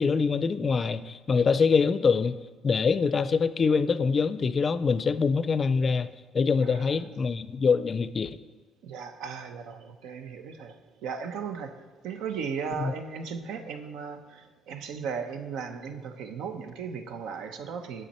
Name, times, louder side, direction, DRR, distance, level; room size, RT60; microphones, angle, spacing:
voice 1, 0.0-2.4 2.6-6.1 6.3-8.4 12.8-12.9, left 5 dB, 35° left, 13 dB, 0.4 m, -24 dB
voice 2, 6.6-7.1 8.8-18.1, right 6 dB, 85° right, 7 dB, 0.8 m, -37 dB
9.0 x 8.2 x 4.3 m, 1.3 s
cardioid pair, 120°, 0 cm